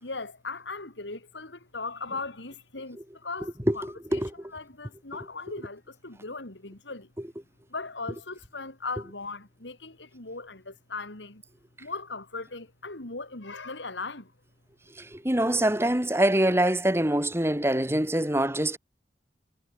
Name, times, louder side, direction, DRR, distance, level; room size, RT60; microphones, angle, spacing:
voice 1, 0.0-7.1 7.7-11.4 11.8-14.3, left 3 dB, 85° left, 3.4 m, -38 dB
voice 2, 15.0-18.8, right 1 dB, 15° right, 2.2 m, -24 dB
head